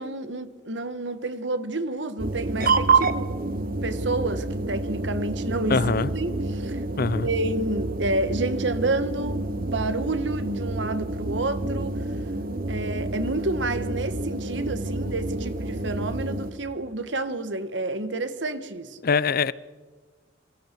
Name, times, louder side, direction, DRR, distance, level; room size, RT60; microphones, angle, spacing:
voice 1, 0.0-3.3 3.8-6.8 7.2-12.2 12.7-19.0, right 2 dB, 75° right, 1.6 m, -29 dB
sound 1, 2.2-16.5, right 3 dB, 50° right, 1.0 m, -28 dB
voice 2, 5.7-6.1 7.0-7.3 19.0-19.5, left 4 dB, 55° left, 0.6 m, -22 dB
27.0 x 24.0 x 4.7 m
head